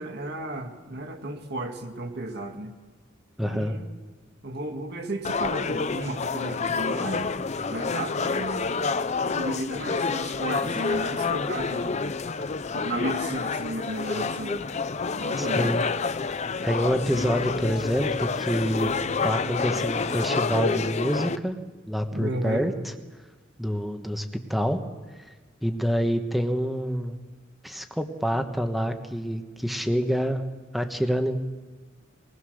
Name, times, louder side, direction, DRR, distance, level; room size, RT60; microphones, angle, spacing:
voice 1, 0.0-2.7 3.4-3.9 4.4-7.3 7.7-8.7 9.3-12.0 12.7-14.7 15.0-15.8 22.1-22.7, right 1 dB, 55° right, 5 dB, 1.9 m, -34 dB
voice 2, 3.4-3.7 15.4-15.8 16.6-18.9 19.2-21.6 21.9-22.7 23.6-24.2 24.5-24.8 25.6-27.2 27.6-30.4 30.7-31.4, equal, ahead, 6 dB, 1.2 m, -27 dB
sound 1, 5.2-21.4, left 4 dB, 35° left, 0.5 m, -28 dB
22.0 x 19.5 x 6.5 m, 1.3 s
head